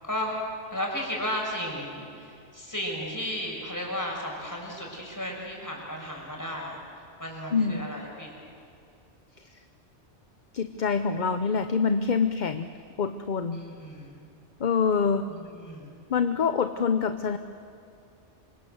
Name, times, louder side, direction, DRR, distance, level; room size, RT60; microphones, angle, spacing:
voice 1, 0.7-6.8 7.2-8.3 13.5-14.2 15.3-15.9, equal, 15° left, -1 dB, 6.0 m, -34 dB
voice 2, 7.5-7.8 10.5-12.7 13.0-13.6 14.6-15.3 16.1-17.4, left 5 dB, 45° left, 9 dB, 0.9 m, -25 dB
27.0 x 25.0 x 7.9 m, 2.5 s
omnidirectional pair, 1.2 m